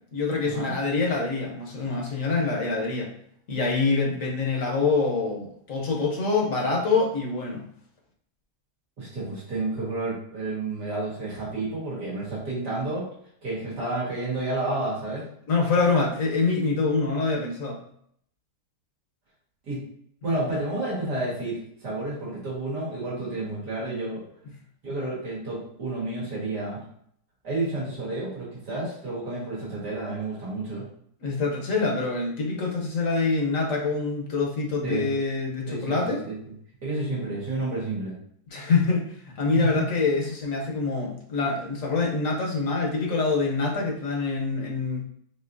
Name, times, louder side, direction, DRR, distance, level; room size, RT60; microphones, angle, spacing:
voice 1, 0.1-3.1 3.5-7.6 15.5-17.8 31.2-36.2 38.5-45.0, left 4 dB, 60° left, 0 dB, 1.2 m, -25 dB
voice 2, 9.0-13.1 13.4-15.3 19.6-19.8 20.2-24.2 24.8-26.8 27.4-30.8 34.8-35.1 35.7-36.4 36.8-38.1 39.5-39.9, right 2 dB, 80° right, -7 dB, 2.4 m, -30 dB
5.6 x 2.9 x 2.6 m, 0.68 s
omnidirectional pair, 1.8 m